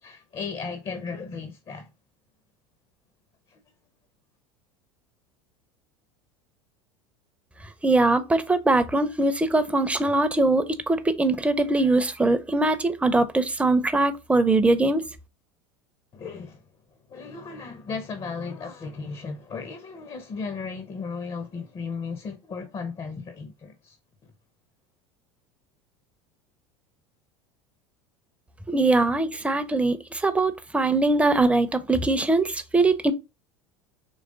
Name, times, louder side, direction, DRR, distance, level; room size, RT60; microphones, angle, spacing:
voice 1, 0.0-1.9 3.5-3.6 16.1-16.6 17.1-24.0, left 5 dB, 30° left, 0.7 m, -35 dB
voice 2, 7.8-15.0 28.7-33.1, right 2 dB, 5° right, 0.6 m, -22 dB
3.9 x 3.2 x 3.7 m
hypercardioid pair, 80°, 17 cm